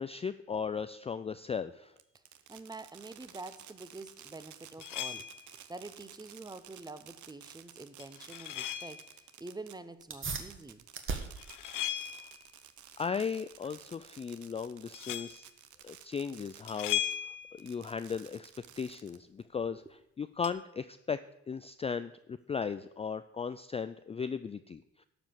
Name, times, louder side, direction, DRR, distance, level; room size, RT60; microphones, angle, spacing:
voice 1, 0.0-1.9 11.9-12.2 13.0-15.5 15.8-18.5 18.8-19.8 20.2-21.2 21.5-25.0, left 6 dB, 20° left, 12 dB, 0.3 m, -37 dB
Fireworks, 2.0-17.2 17.6-19.4, right 10 dB, 75° right, 0.9 m, -54 dB
voice 2, 2.5-5.2 5.7-10.8 19.7-19.8, right 3 dB, 15° right, 12 dB, 0.8 m, -47 dB
sound 1, 4.8-5.5 8.0-9.1 11.2-12.5 14.9-15.4 16.7-17.7 20.4-20.5, left 11 dB, 85° left, 0.7 m, -37 dB
sound 2, 10.0-20.0, right 4 dB, 40° right, 1.5 m, -45 dB
12.0 x 5.1 x 7.4 m, 0.81 s
cardioid pair, 90°, 30 cm